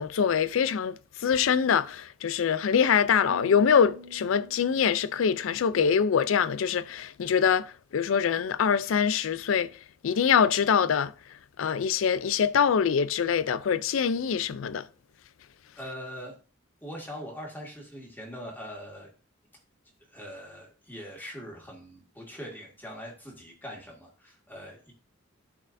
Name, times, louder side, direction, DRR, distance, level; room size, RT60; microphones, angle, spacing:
voice 1, 0.0-9.7 10.0-11.1 11.6-14.9, left 7 dB, 85° left, 0.4 m, -24 dB
sound 1, 3.3-6.7, left 1 dB, 70° right, 0.8 m, -48 dB
voice 2, 15.8-16.3 16.8-19.1 20.1-24.9, equal, 10° left, 1.9 m, -42 dB
12.0 x 4.4 x 2.6 m
head